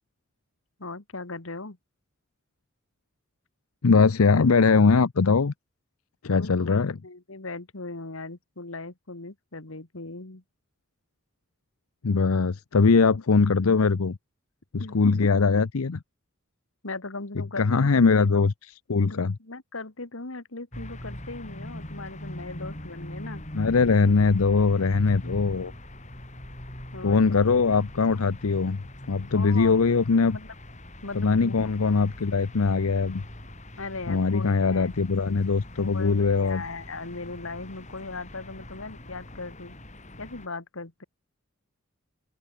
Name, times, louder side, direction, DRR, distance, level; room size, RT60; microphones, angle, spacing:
voice 1, 0.8-1.8 6.4-6.7 7.0-10.4 14.8-15.0 16.8-17.7 17.9-18.4 19.1-23.4 26.9-27.4 29.3-29.8 30.3-30.5 31.0-31.6 33.8-34.9 35.8-39.8 40.2-41.0, left 3 dB, 70° left, 1.9 m, -38 dB
voice 2, 3.8-5.5 6.2-7.0 12.0-14.2 14.7-16.0 17.6-18.5 18.9-19.4 23.5-25.7 27.0-30.4 31.1-33.2 34.1-36.6, left 4 dB, 85° left, 0.7 m, -21 dB
sound 1, 20.7-40.5, left 1 dB, 35° left, 5.0 m, -42 dB
open air
head